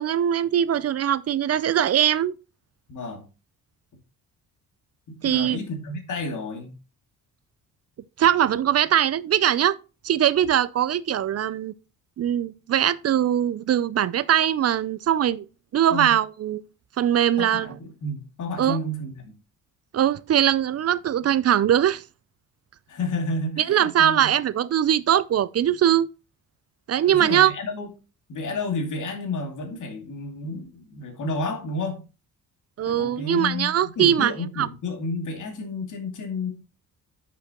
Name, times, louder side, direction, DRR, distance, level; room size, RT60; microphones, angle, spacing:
voice 1, 0.0-2.3 5.2-5.6 8.2-9.7 10.0-11.7 12.2-15.4 15.7-16.6 17.0-17.8 18.6-18.8 19.9-22.0 23.6-26.1 26.9-27.5 32.8-34.3 34.6-34.7, right 10 dB, 45° right, 0.5 m, -21 dB
voice 2, 2.9-3.2 5.1-6.8 15.9-16.2 17.4-19.3 22.9-24.3 27.1-27.9 28.3-32.0 32.9-36.5, left 2 dB, 55° left, 2.6 m, -31 dB
9.7 x 7.0 x 2.9 m
cardioid pair, 125°, 35 cm